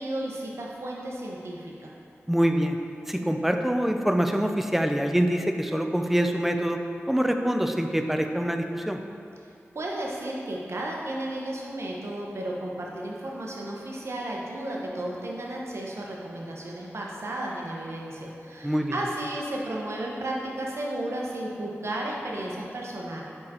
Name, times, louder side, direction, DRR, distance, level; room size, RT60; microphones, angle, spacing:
voice 1, 0.0-1.9 9.7-23.2, right 1 dB, 65° right, -2 dB, 0.8 m, -33 dB
voice 2, 2.3-2.8 3.1-6.8 7.1-9.0 18.6-19.0, equal, 5° right, 5 dB, 0.4 m, -25 dB
4.9 x 4.6 x 4.2 m, 2.6 s
wide cardioid pair, 75°, 5 cm